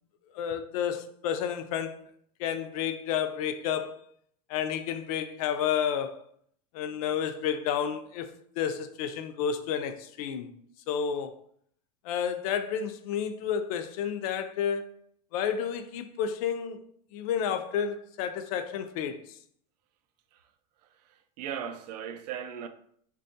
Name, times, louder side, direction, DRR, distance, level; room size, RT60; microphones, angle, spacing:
voice 1, 0.3-2.0 2.4-4.0 4.5-6.2 6.7-10.5 10.9-11.3 12.0-15.0 15.3-16.8 17.1-19.2, left 8 dB, 65° left, 0.4 m, -31 dB
voice 2, 21.0-22.7, right 8 dB, 80° right, 0.4 m, -38 dB
3.5 x 2.3 x 2.6 m
supercardioid pair, 145°, 20 cm